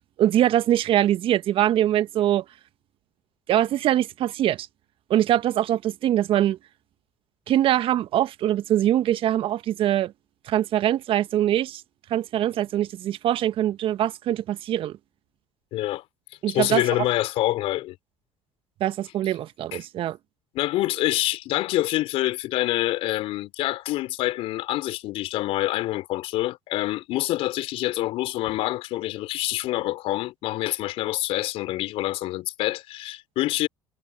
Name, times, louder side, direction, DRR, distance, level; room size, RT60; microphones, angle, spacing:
voice 1, 0.2-2.4 3.5-4.7 5.1-6.6 7.5-10.1 10.5-11.8 12.1-15.0 16.4-16.8 18.8-20.2, right 12 dB, 55° right, 1.7 m, -23 dB
voice 2, 15.7-16.0 16.5-18.0 19.7-19.8 20.5-33.7, left 16 dB, 60° left, 3.5 m, -26 dB
hypercardioid pair, 65°, 11 cm